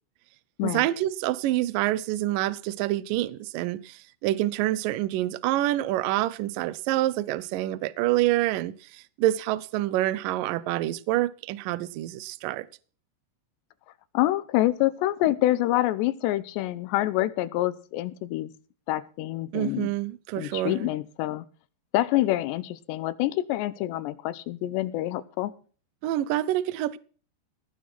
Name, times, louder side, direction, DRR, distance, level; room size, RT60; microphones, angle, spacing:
voice 1, 0.6-12.7 19.5-20.9 26.0-27.0, right 15 dB, 85° right, 1.9 m, -27 dB
voice 2, 14.1-18.5 18.9-19.9 20.4-21.5 21.9-25.5, left 15 dB, 85° left, 3.0 m, -26 dB
18.5 x 7.4 x 6.0 m
omnidirectional pair, 4.9 m